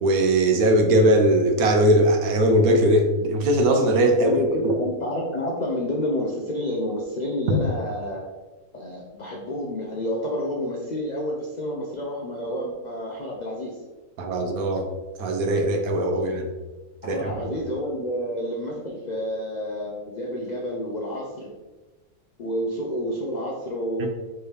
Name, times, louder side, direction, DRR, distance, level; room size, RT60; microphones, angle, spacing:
voice 1, 0.0-4.3 4.6-4.7 14.2-14.9 15.2-16.5 17.0-17.3 24.0-24.1, right 1 dB, 80° right, 4 dB, 1.2 m, -20 dB
voice 2, 4.1-8.3 8.7-13.8 16.1-16.2 17.0-21.5 22.4-24.1, equal, 70° left, -1 dB, 0.4 m, -29 dB
4.6 x 3.1 x 3.3 m, 1.2 s
omnidirectional pair, 1.5 m